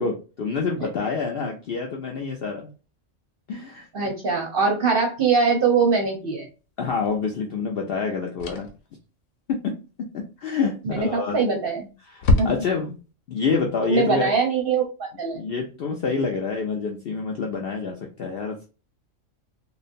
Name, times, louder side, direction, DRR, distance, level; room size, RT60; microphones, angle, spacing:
voice 1, 0.0-2.7 3.5-3.9 6.8-8.7 9.5-9.8 10.1-11.4 12.1-13.0 13.3-14.3 15.3-18.7, left 5 dB, 65° left, 1 dB, 0.6 m, -27 dB
voice 2, 3.9-6.5 10.8-11.9 12.4-12.5 13.9-15.4, right 5 dB, 55° right, 2 dB, 0.7 m, -22 dB
sound 1, 7.0-7.2 8.4-8.9 11.0-11.4 11.7-11.8 12.2-13.0, left 2 dB, 85° left, 1.0 m, -24 dB
3.1 x 2.0 x 2.5 m, 0.33 s
omnidirectional pair, 1.4 m